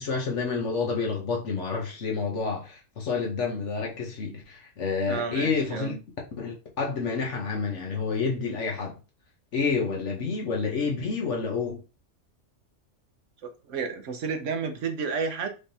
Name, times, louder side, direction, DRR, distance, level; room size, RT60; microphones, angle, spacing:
voice 1, 0.0-5.9 6.4-8.9 9.5-11.8, left 4 dB, 75° left, 1.4 m, -29 dB
voice 2, 5.1-6.0 13.4-15.5, right 5 dB, 85° right, 1.2 m, -31 dB
5.1 x 3.5 x 2.8 m
omnidirectional pair, 1.2 m